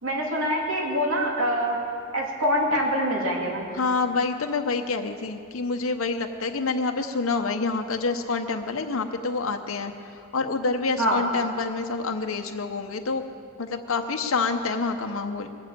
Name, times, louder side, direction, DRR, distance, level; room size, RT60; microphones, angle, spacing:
voice 1, 0.0-1.8 2.1-3.7 11.0-11.2, equal, 80° right, -1 dB, 2.5 m, -25 dB
voice 2, 3.7-13.3 13.6-15.5, left 4 dB, 80° left, 5 dB, 0.8 m, -27 dB
21.0 x 7.5 x 8.6 m, 2.5 s
head